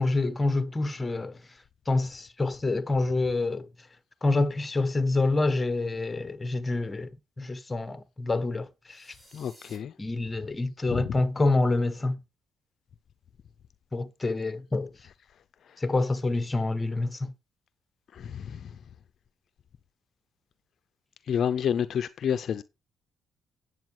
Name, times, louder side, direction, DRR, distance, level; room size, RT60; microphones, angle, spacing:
voice 1, 0.0-1.4 1.9-3.7 4.2-7.1 7.4-9.1 10.0-12.2 13.9-14.9 15.8-17.3, left 2 dB, 20° left, 1.3 m, -27 dB
sound 1, 8.9-9.8, right 1 dB, 15° right, 5.6 m, -54 dB
voice 2, 9.3-9.9 10.9-11.2 15.7-15.8 18.1-18.8 21.3-22.6, left 8 dB, 60° left, 0.6 m, -29 dB
9.2 x 8.2 x 4.7 m
cardioid pair, 90°, 0 cm